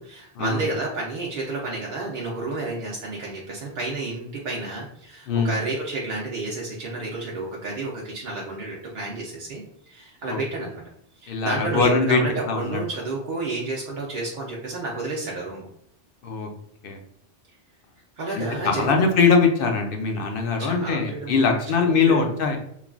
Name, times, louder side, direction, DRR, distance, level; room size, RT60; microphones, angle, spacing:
voice 1, 0.0-10.8 11.2-15.7 18.2-19.2 20.6-21.4 21.7-22.3, right 2 dB, 55° right, -3 dB, 0.6 m, -31 dB
voice 2, 11.3-12.2 12.5-12.8 16.2-16.5 16.8-17.0 18.3-22.6, left 4 dB, 60° left, 3 dB, 0.6 m, -21 dB
3.1 x 2.2 x 2.4 m, 0.71 s
omnidirectional pair, 1.2 m